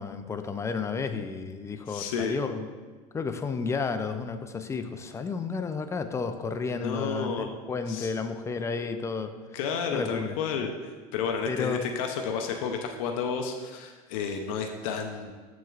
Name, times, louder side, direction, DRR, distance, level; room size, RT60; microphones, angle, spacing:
voice 1, 0.0-2.7 3.1-9.3 9.9-10.4 11.5-12.2, left 5 dB, 15° left, 8 dB, 0.4 m, -32 dB
voice 2, 1.9-2.4 6.7-7.5 7.9-8.1 9.5-15.3, left 6 dB, 80° left, 4 dB, 0.6 m, -31 dB
6.9 x 6.1 x 2.4 m, 1.4 s
supercardioid pair, 110°, 17 cm